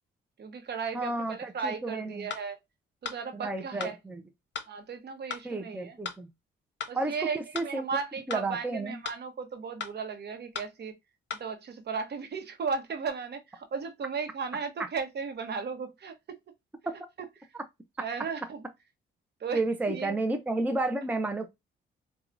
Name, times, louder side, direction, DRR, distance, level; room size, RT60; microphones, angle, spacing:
voice 1, 0.4-2.6 3.0-4.0 4.7-6.0 6.9-11.0 11.4-16.1 17.2-17.5 18.0-18.6 19.4-19.6 19.9-20.2, right 5 dB, 55° right, 1.0 m, -35 dB
voice 2, 0.9-2.3 3.3-4.2 5.4-6.3 6.9-7.1 7.5-7.8 8.3-9.0 19.5-21.5, right 2 dB, 10° right, 0.6 m, -31 dB
sound 1, 2.3-2.4 3.0-3.2 3.8-3.9 4.5-4.7 5.3-5.4 6.0-6.2 6.8-6.9 7.5-7.7 8.3-8.4 9.0-9.2 9.8-9.9 10.5-10.7 11.3-11.4, left 6 dB, 60° left, 0.7 m, -36 dB
4.5 x 2.3 x 2.5 m
cardioid pair, 80°, 21 cm